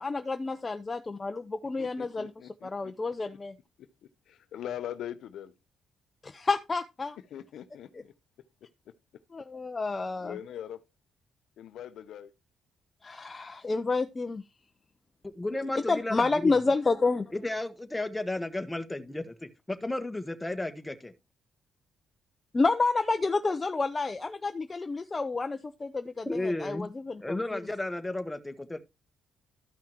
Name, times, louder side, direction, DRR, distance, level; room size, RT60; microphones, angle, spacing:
voice 1, 0.0-2.3 2.6-3.5 6.2-7.2 7.9-8.0 9.3-10.4 13.0-14.4 15.9-17.3 22.5-27.6, left 3 dB, 25° left, 0.7 m, -29 dB
voice 2, 1.8-2.9 3.8-3.9 4.3-5.5 7.3-8.1 10.2-10.8 11.6-12.3 15.5-15.9, left 10 dB, 75° left, 0.8 m, -41 dB
voice 3, 15.2-16.6 17.3-21.1 26.2-26.9 27.2-28.8, left 2 dB, 10° left, 1.4 m, -33 dB
13.5 x 5.7 x 3.0 m
cardioid pair, 90°, 0 cm